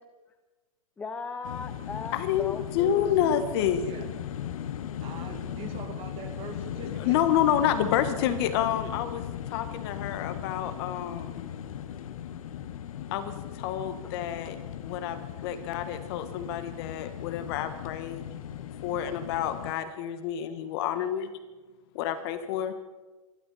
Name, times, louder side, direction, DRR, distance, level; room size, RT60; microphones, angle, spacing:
voice 1, 1.0-3.1 14.0-14.1, left 4 dB, 10° left, 7 dB, 0.6 m, -38 dB
sound 1, 1.4-19.7, left 10 dB, 75° left, 1.1 m, -38 dB
voice 2, 2.1-3.9 6.8-9.2 9.5-11.5 13.1-18.2 18.8-21.3 21.9-22.7, left 10 dB, 45° left, 9 dB, 1.4 m, -29 dB
voice 3, 5.0-7.2, right 5 dB, 30° right, 5 dB, 2.3 m, -42 dB
25.5 x 12.0 x 4.2 m, 1.2 s
hypercardioid pair, 150°, 18 cm